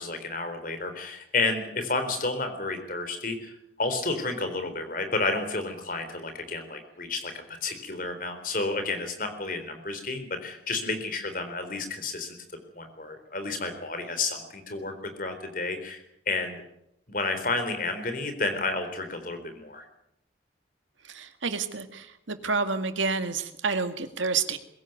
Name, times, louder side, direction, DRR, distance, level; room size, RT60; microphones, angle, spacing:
voice 1, 0.0-3.5 3.8-7.3 7.6-12.4 12.7-14.9 15.2-16.6 17.1-19.9, left 3 dB, 45° left, 8 dB, 4.0 m, -31 dB
voice 2, 21.1-24.6, right 4 dB, 90° right, 8 dB, 2.0 m, -29 dB
22.0 x 16.5 x 9.4 m, 0.79 s
head